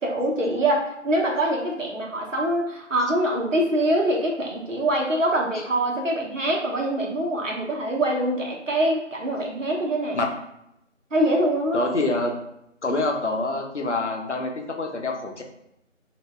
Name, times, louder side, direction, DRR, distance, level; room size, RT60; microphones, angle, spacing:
voice 1, 0.0-10.2 11.1-11.9, right 1 dB, 80° right, -1 dB, 1.0 m, -24 dB
voice 2, 11.7-12.3 12.8-15.4, left 2 dB, 65° left, 3 dB, 0.7 m, -26 dB
2.6 x 2.1 x 3.2 m, 0.82 s
figure-of-eight pair, 170°, 38 cm